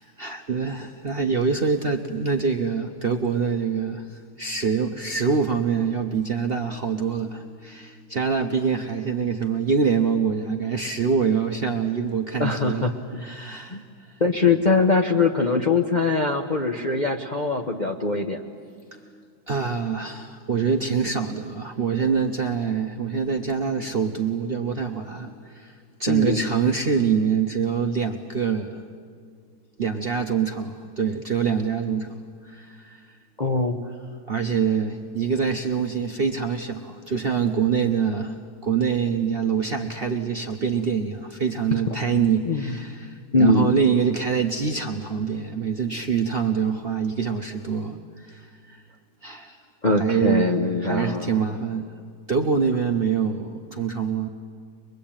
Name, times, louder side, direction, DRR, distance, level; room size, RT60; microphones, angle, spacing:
voice 1, 0.0-12.9 13.2-14.1 18.9-28.8 29.8-32.2 32.4-33.1 34.3-48.8 49.2-49.6 50.0-50.5 50.8-51.9 52.3-54.3, right 6 dB, 45° right, 4 dB, 0.8 m, -25 dB
voice 2, 12.4-13.2 13.7-13.8 14.2-18.4 26.1-26.4 33.4-33.7 42.5-42.8 43.3-43.7 49.8-51.4, left 3 dB, 35° left, 1 dB, 0.8 m, -22 dB
22.5 x 22.5 x 8.8 m, 2.1 s
omnidirectional pair, 2.0 m